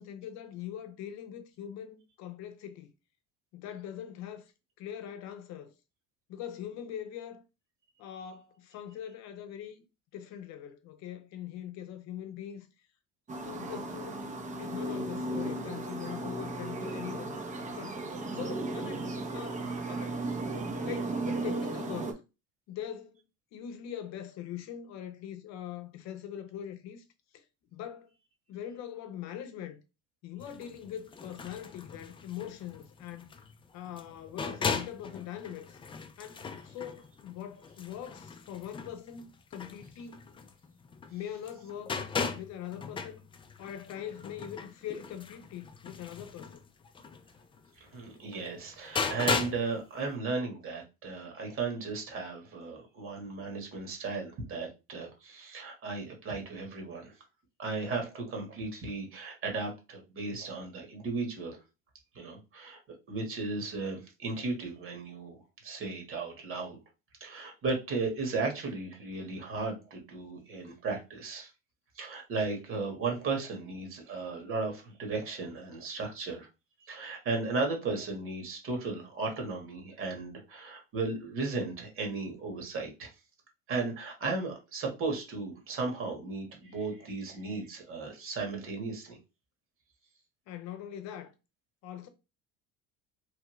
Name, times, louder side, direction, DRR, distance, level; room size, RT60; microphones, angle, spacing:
voice 1, 0.0-2.9 3.5-4.5 4.8-5.7 6.3-7.4 8.0-9.8 10.1-12.7 13.4-14.3 14.6-20.3 20.8-22.2 22.7-23.2 23.5-27.0 27.3-27.4 27.7-28.1 28.5-29.8 30.2-33.3 33.7-35.8 36.2-40.2 41.1-42.0 42.3-43.2 43.6-46.6 90.5-91.3 91.8-92.1, left 10 dB, 65° left, 0.7 m, -42 dB
sound 1, 13.3-22.1, right 2 dB, 25° right, 0.6 m, -35 dB
sound 2, 30.4-41.2 41.4-49.7 50.0-50.1, left 5 dB, 20° left, 0.4 m, -38 dB
voice 2, 47.8-57.1 57.6-61.6 62.1-62.8 63.1-66.8 67.2-71.5 71.9-76.5 76.8-83.1 83.7-89.2, right 3 dB, 45° right, 1.3 m, -35 dB
3.2 x 2.3 x 3.0 m
supercardioid pair, 100°, 29 cm